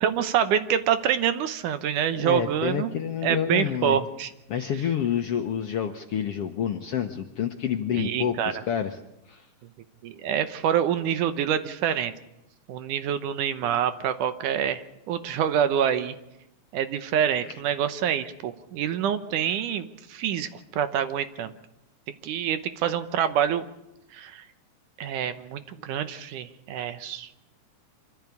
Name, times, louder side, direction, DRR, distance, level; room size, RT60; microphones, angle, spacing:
voice 1, 0.0-2.9 3.2-4.3 7.9-8.6 10.0-12.1 12.7-16.2 16.7-21.5 22.2-23.6 24.1-24.4 25.0-27.4, right 9 dB, 75° right, 11 dB, 2.4 m, -26 dB
voice 2, 2.2-4.0 4.5-9.0 9.3-9.4, left 9 dB, 65° left, 5 dB, 1.5 m, -28 dB
25.0 x 14.5 x 8.4 m, 0.87 s
omnidirectional pair, 3.8 m